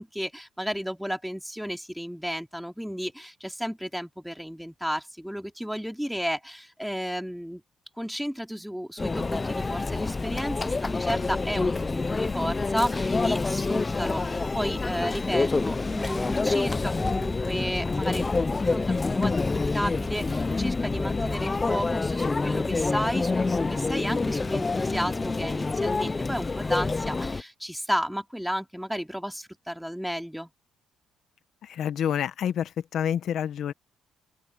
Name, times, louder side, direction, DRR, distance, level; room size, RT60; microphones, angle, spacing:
voice 1, 0.0-7.6 8.0-30.5, equal, ahead, 3.2 m, -33 dB
Conversation / Chatter / Crowd, 9.0-27.4, left 3 dB, 25° left, 0.6 m, -27 dB
voice 2, 31.6-33.7, left 9 dB, 70° left, 1.4 m, -28 dB
open air
cardioid pair, 90°, 0 cm